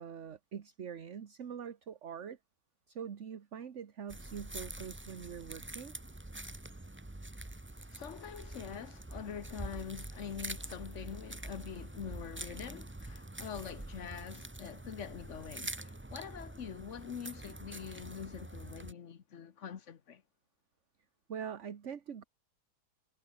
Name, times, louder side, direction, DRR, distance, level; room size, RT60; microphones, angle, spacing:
voice 1, 0.0-2.4 2.9-5.9 21.3-22.2, right 7 dB, 50° right, 1.5 m, -44 dB
sound 1, 4.1-18.9, right 1 dB, 10° right, 0.8 m, -45 dB
voice 2, 7.9-20.2, left 7 dB, 50° left, 1.4 m, -44 dB
omnidirectional pair, 1.7 m